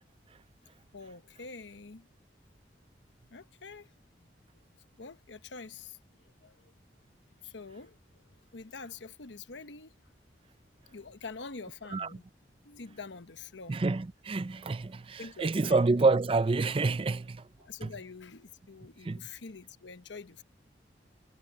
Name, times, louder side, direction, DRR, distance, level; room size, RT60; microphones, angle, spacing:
voice 1, 0.9-2.1 3.3-4.3 5.0-6.7 7.4-9.9 10.8-12.2 12.6-13.7 15.2-15.8 17.6-20.4, left 4 dB, 85° left, 1.0 m, -46 dB
voice 2, 13.7-17.5 17.8-17.9 19.0-19.3, right 3 dB, 30° right, 0.4 m, -28 dB
head